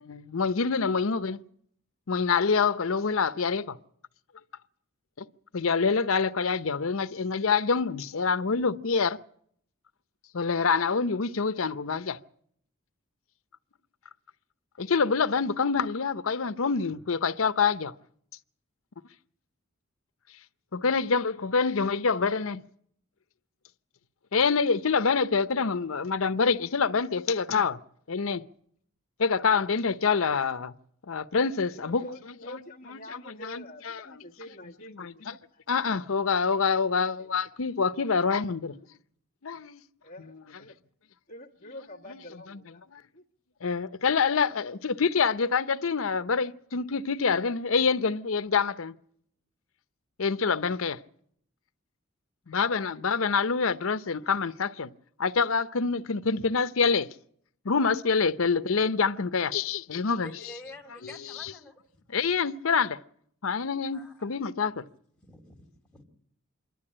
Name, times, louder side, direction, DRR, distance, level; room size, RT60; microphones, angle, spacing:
voice 1, 0.0-1.4 2.1-3.8 5.2-5.3 5.5-9.2 10.3-12.2 14.8-17.9 20.7-22.6 24.3-27.8 28.1-28.4 29.2-30.7 31.1-34.1 34.5-35.4 35.7-38.8 39.4-39.8 40.2-40.6 41.6-42.2 42.5-43.0 43.6-49.0 50.2-51.0 52.5-54.9 55.2-57.1 57.6-60.6 61.0-61.5 62.1-63.0 63.4-64.8, left 5 dB, 80° left, 0.7 m, -26 dB
voice 2, 31.8-35.6 40.0-40.8 41.3-42.8 43.1-43.2, left 1 dB, 35° left, 1.6 m, -46 dB
voice 3, 60.2-61.8 63.9-64.3 65.2-66.0, left 1 dB, 5° left, 2.8 m, -48 dB
27.0 x 12.0 x 8.7 m
head